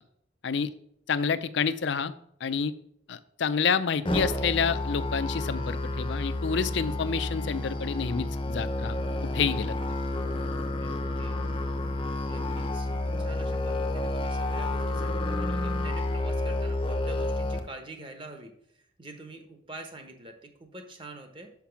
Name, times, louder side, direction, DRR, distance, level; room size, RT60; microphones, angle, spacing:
voice 1, 1.1-2.1 2.4-2.7 3.1-9.0 9.3-9.7, left 6 dB, 65° left, 14 dB, 0.5 m, -28 dB
Musical instrument, 4.0-17.6, left 2 dB, 25° left, 0.6 m, -30 dB
voice 2, 10.8-11.4 12.3-12.9 13.2-18.5 19.0-21.5, right 2 dB, 25° right, 5 dB, 0.9 m, -45 dB
5.9 x 5.7 x 5.8 m, 0.71 s
head